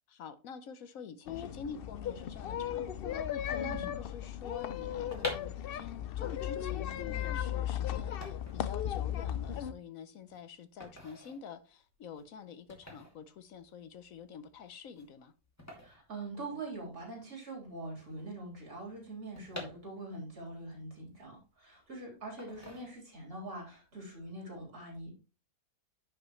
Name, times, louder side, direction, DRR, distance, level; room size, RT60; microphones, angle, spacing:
voice 1, 0.1-15.3, left 6 dB, 65° left, 1.1 m, -47 dB
sound 1, 1.3-9.7, left 10 dB, 90° left, 0.5 m, -36 dB
voice 2, 3.5-3.9 15.8-25.1, right 2 dB, 70° right, 4.2 m, -43 dB
sound 2, 5.1-17.0 17.2-17.3 17.5-20.4 20.8-21.8 22.4-23.4 23.7-24.0, left 1 dB, 10° left, 2.5 m, -47 dB
10.5 x 5.9 x 3.1 m
omnidirectional pair, 1.6 m